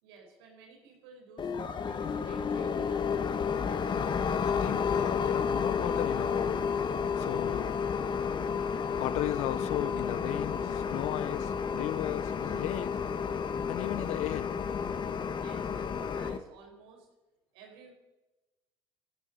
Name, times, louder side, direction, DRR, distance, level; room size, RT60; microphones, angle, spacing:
voice 1, 0.0-3.4 15.4-17.1 17.5-17.9, right 5 dB, 90° right, 4.3 m, -54 dB
sound 1, 1.4-16.4, left 6 dB, 40° left, 1.2 m, -31 dB
voice 2, 4.4-6.7 7.2-7.7 9.0-13.0 13.7-14.5, left 17 dB, 70° left, 0.4 m, -36 dB
18.5 x 14.5 x 4.0 m
supercardioid pair, 80°, 12 cm